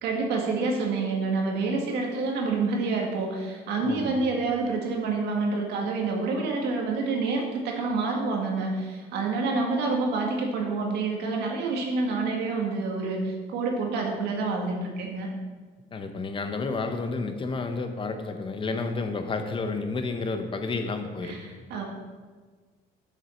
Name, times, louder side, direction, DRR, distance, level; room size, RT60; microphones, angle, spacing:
voice 1, 0.0-15.3 21.2-21.8, right 3 dB, 80° right, 1 dB, 1.7 m, -28 dB
voice 2, 3.8-4.2 15.9-21.7, left 3 dB, 30° left, 7 dB, 0.9 m, -31 dB
7.3 x 7.0 x 4.4 m, 1.5 s
cardioid pair, 110°, 17 cm